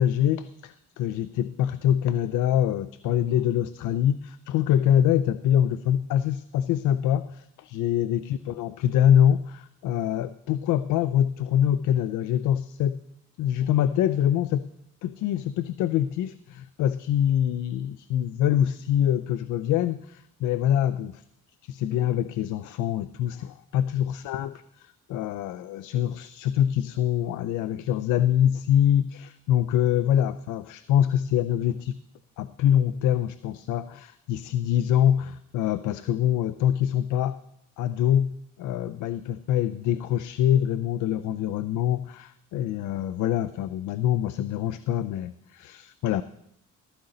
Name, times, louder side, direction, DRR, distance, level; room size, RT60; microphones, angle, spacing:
voice 1, 0.0-13.0 13.4-14.7 15.0-21.2 21.6-32.0 32.4-37.4 37.8-46.2, left 10 dB, 85° left, 15 dB, 0.5 m, -25 dB
14.0 x 13.0 x 3.9 m, 0.77 s
cardioid pair, 90°, 30 cm